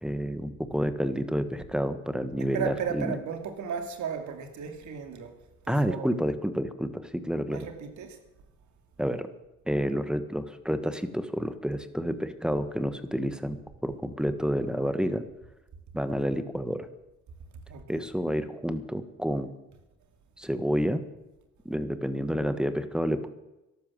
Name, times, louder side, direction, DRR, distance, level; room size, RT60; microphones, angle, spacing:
voice 1, 0.0-3.1 5.7-7.7 9.0-9.3 9.7-15.2 15.9-16.9 17.9-19.5 20.4-21.0 21.6-23.3, equal, 5° right, 1.4 m, -29 dB
voice 2, 2.4-5.3 5.6-6.1 7.5-8.2 17.7-18.1, right 7 dB, 70° right, 2.6 m, -35 dB
13.5 x 11.5 x 7.7 m
cardioid pair, 90°, 30 cm